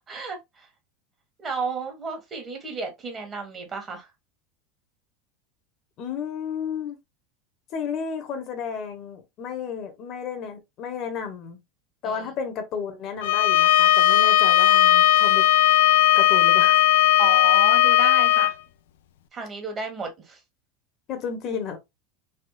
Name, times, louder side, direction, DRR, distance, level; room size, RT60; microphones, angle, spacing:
voice 1, 0.1-0.7 1.4-4.1 12.0-12.3 17.2-18.6 19.3-20.4, right 4 dB, 30° right, 1.4 m, -33 dB
voice 2, 6.0-7.0 7.7-11.6 12.0-15.5 16.1-16.8 21.1-21.8, left 6 dB, 50° left, 1.0 m, -32 dB
Bowed string instrument, 13.2-18.5, left 13 dB, 75° left, 0.3 m, -17 dB
3.5 x 2.3 x 2.4 m
hypercardioid pair, 90°, 0 cm